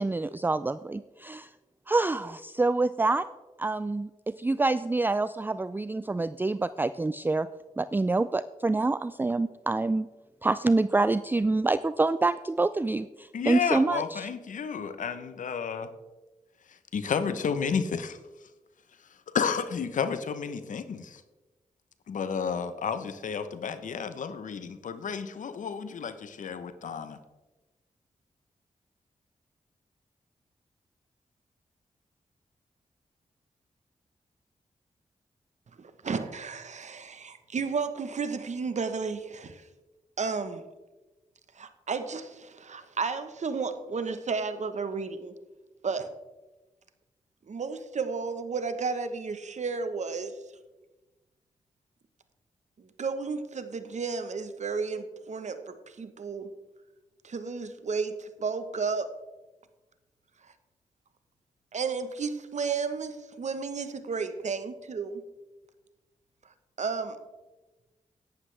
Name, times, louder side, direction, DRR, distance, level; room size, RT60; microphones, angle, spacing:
voice 1, 0.0-1.5 1.9-3.2 3.6-7.5 7.8-10.1 10.4-14.3, right 3 dB, 15° right, 14 dB, 0.3 m, -26 dB
voice 2, 13.3-15.9 16.9-18.2 19.3-21.2 22.1-27.2, left 6 dB, 75° left, 11 dB, 0.8 m, -31 dB
voice 3, 35.8-39.6 40.2-40.6 41.6-45.3 45.8-46.1 47.5-50.3 52.8-56.5 57.2-59.1 61.7-65.2 66.8-67.2, right 5 dB, 60° right, 10 dB, 1.1 m, -33 dB
11.5 x 9.7 x 3.3 m, 1.1 s
cardioid pair, 45°, 13 cm